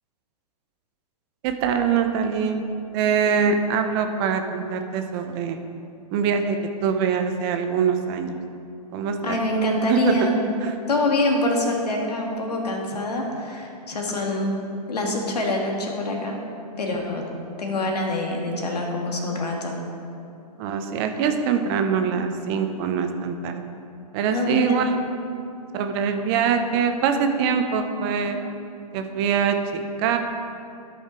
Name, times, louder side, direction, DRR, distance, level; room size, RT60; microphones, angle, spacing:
voice 1, 1.4-2.6 2.9-5.6 6.1-8.4 8.9-9.4 9.9-10.1 10.6-10.7 20.6-23.6 24.1-24.9 25.7-28.4 28.9-30.2, right 6 dB, 40° right, 6 dB, 0.8 m, -23 dB
voice 2, 9.2-10.4 10.9-14.5 14.9-16.4 16.8-17.2 17.6-19.7 24.3-24.8, left 1 dB, 85° left, 0 dB, 1.8 m, -25 dB
13.0 x 5.7 x 4.4 m, 2.6 s
hypercardioid pair, 125°, 20 cm